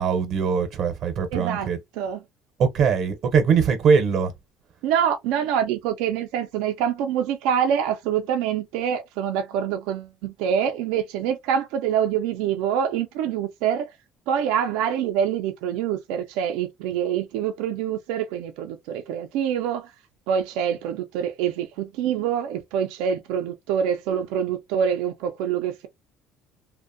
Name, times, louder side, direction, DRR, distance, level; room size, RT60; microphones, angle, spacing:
voice 1, 0.0-1.8 2.6-4.3, right 6 dB, 55° right, 0.6 m, -21 dB
voice 2, 1.3-1.7 1.9-2.2 4.8-13.9 14.3-19.9 20.3-25.9, right 8 dB, 85° right, 0.3 m, -25 dB
2.5 x 2.1 x 2.5 m
cardioid pair, 125°, 0 cm